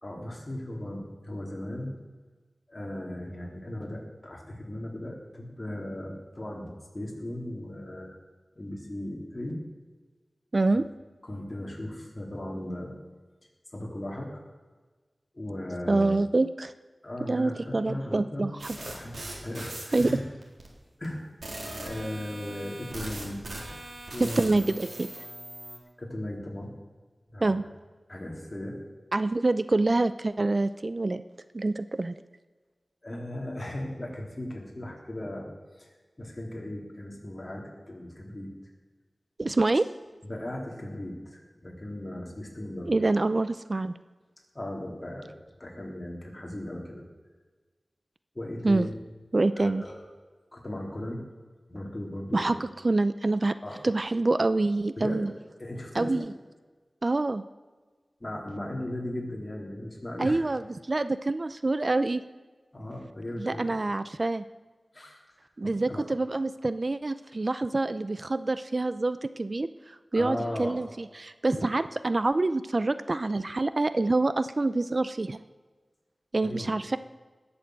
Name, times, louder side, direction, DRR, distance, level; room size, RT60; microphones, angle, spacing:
voice 1, 0.0-2.0 2.7-8.2 8.5-9.6 10.7-10.8 11.2-12.9 13.7-14.3 15.3-16.2 17.0-18.5 18.7-20.2 21.0-21.3 21.8-23.4 24.1-24.7 26.0-26.7 27.3-27.7 28.1-28.8 33.0-35.5 35.8-35.9 36.2-38.5 39.7-39.8 40.2-43.0 44.5-45.3 45.6-47.0 48.3-48.9 49.5-50.1 50.5-51.2 51.7-52.6 53.6-53.8 55.0-55.3 55.6-56.3 58.2-60.4 62.7-63.7 64.9-65.2 65.6-66.1 70.1-70.8 71.5-71.7 76.4-76.7, left 1 dB, 30° left, -1 dB, 3.4 m, -37 dB
voice 2, 10.5-10.8 15.9-16.7 17.3-18.9 19.9-20.1 24.2-25.2 27.4-27.6 29.1-31.2 31.5-32.1 39.4-39.8 42.9-43.9 48.6-48.9 49.3-49.8 52.3-53.6 53.8-55.3 55.9-56.3 57.0-57.4 60.2-60.6 60.9-62.2 63.4-64.4 65.6-69.7 70.1-75.4 76.3-77.0, right 2 dB, 45° right, 13 dB, 0.5 m, -26 dB
sound 1, 18.6-20.1 20.4-20.7 21.0-21.1 21.4-25.8, right 1 dB, 85° right, 3.7 m, -40 dB
20.0 x 7.1 x 7.7 m, 1.3 s
wide cardioid pair, 80°, 0 cm